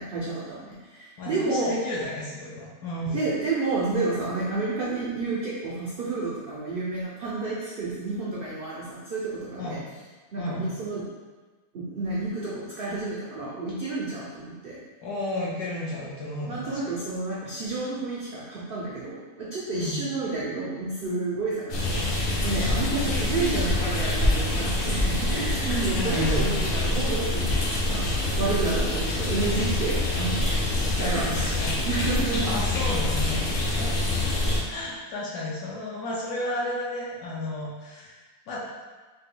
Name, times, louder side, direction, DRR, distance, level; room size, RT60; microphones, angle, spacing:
voice 1, 0.0-1.7 3.1-9.8 10.3-11.0 11.7-14.8 16.5-30.5 30.9-32.4, right 3 dB, 90° right, -5 dB, 0.4 m, -30 dB
voice 2, 1.2-3.2 9.6-9.8 10.4-10.6 15.0-16.8 19.7-20.0 26.0-26.6 31.0-31.7 32.4-33.9 34.4-38.6, left 1 dB, 70° left, -5 dB, 1.1 m, -33 dB
sound 1, 21.7-34.6, left 2 dB, 55° left, 0.8 m, -26 dB
4.1 x 2.2 x 3.6 m, 1.3 s
omnidirectional pair, 1.7 m